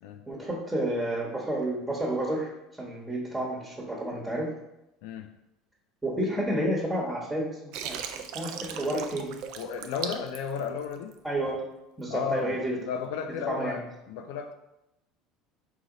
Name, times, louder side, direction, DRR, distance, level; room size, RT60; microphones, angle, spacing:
voice 1, 0.3-4.5 6.0-9.4 11.2-11.6 12.0-12.8 13.3-13.8, right 1 dB, 10° right, -3 dB, 1.2 m, -30 dB
Water, 7.7-11.2, right 8 dB, 65° right, 0.4 m, -38 dB
voice 2, 9.6-11.1 12.1-13.8 14.1-14.5, left 6 dB, 70° left, 6 dB, 0.3 m, -33 dB
4.1 x 2.8 x 3.8 m, 0.91 s
hypercardioid pair, 75°, 0 cm